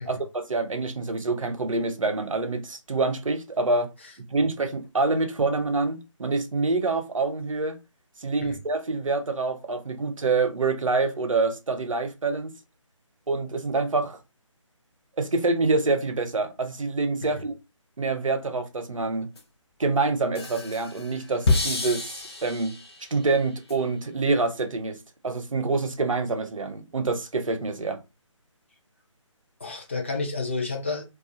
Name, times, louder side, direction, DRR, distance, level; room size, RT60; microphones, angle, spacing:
voice 1, 0.1-3.9 4.3-7.8 8.2-12.5 13.3-14.2 15.2-17.5 18.0-19.3 19.8-22.1 22.4-22.8 23.1-25.0 25.2-28.0, right 3 dB, 75° right, 0.6 m, -26 dB
sound 1, 19.4-19.5 20.3-23.1 23.7-23.8, left 3 dB, 50° left, 0.7 m, -28 dB
voice 2, 29.6-31.0, left 3 dB, 20° left, 0.4 m, -31 dB
2.3 x 2.3 x 2.5 m
figure-of-eight pair, 150°, 17 cm